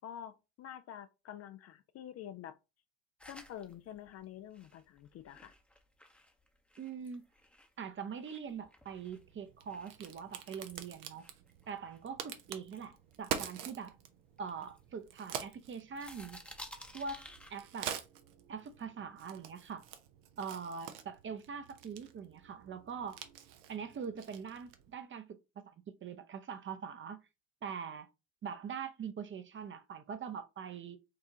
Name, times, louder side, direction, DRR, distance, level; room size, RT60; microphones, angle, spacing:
voice 1, 0.0-2.6 3.2-5.5, left 10 dB, 45° left, 0.4 m, -48 dB
sound 1, 3.2-7.8 8.2-12.3 12.7-13.9 14.4-15.6 15.9-17.9, left 1 dB, 5° left, 0.7 m, -55 dB
voice 2, 6.8-7.3 7.8-11.3 11.7-14.0 14.4-16.4 16.9-17.9 18.5-19.8 20.4-23.2 23.7-25.4 25.7-25.8 26.0-27.2 27.6-28.1 28.4-31.0, right 6 dB, 35° right, 0.6 m, -43 dB
Crack, 8.9-24.9, right 9 dB, 75° right, 0.7 m, -47 dB
4.7 x 2.4 x 2.8 m
hypercardioid pair, 60°, 36 cm